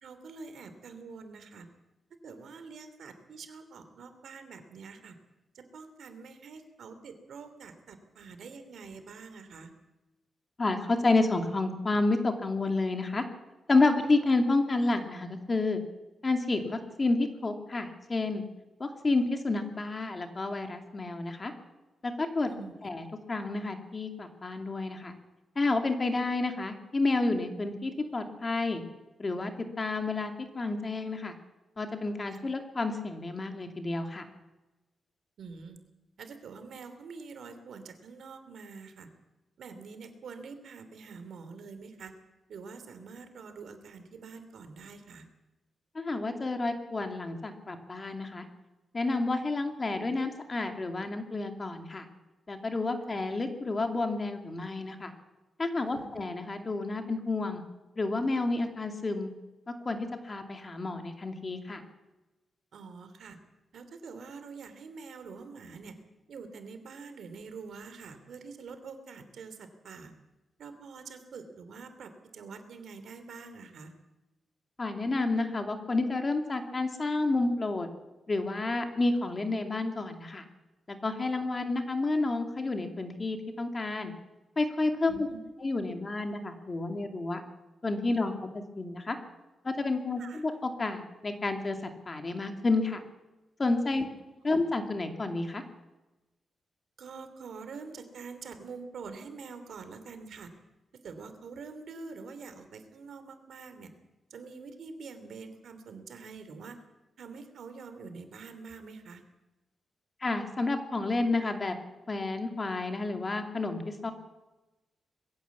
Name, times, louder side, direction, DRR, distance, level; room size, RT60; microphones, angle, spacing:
voice 1, 0.0-1.7 2.2-5.2 5.5-9.7 22.5-22.7 32.3-32.4 35.4-35.8 36.2-39.1 39.6-42.1 42.5-45.3 55.8-56.2 62.7-63.4 63.7-66.0 66.3-70.1 70.6-73.9 85.1-85.4 90.2-90.4 94.5-94.6 97.0-100.5 101.0-103.9 104.3-106.8 107.2-109.2, right 4 dB, 75° right, 9 dB, 2.9 m, -46 dB
voice 2, 10.6-13.2 13.7-15.8 16.2-18.4 18.8-21.5 22.0-22.5 22.8-25.1 25.6-28.8 29.2-29.5 29.8-31.3 31.8-34.2 45.9-48.5 48.9-52.1 52.5-55.1 55.6-57.6 58.0-59.3 59.7-61.8 74.8-77.9 78.3-80.4 80.9-84.1 84.6-85.3 85.6-87.4 87.8-89.2 89.6-93.0 93.6-94.0 94.4-95.6 110.2-111.7 112.1-114.1, left 3 dB, 30° left, 5 dB, 2.5 m, -30 dB
21.5 x 16.0 x 8.4 m, 1.1 s
wide cardioid pair, 120°, 0 cm